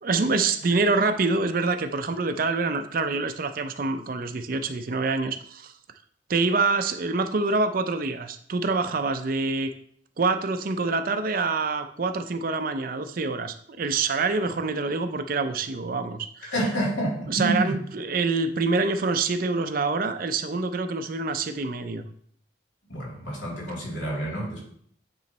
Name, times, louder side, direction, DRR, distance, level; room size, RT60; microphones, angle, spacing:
voice 1, 0.0-5.7 6.3-9.7 10.2-16.5 17.3-22.1, right 3 dB, 45° right, 9 dB, 0.5 m, -26 dB
voice 2, 16.5-17.7 22.9-24.6, right 1 dB, 75° left, -4 dB, 2.8 m, -28 dB
9.3 x 3.1 x 4.2 m, 0.64 s
head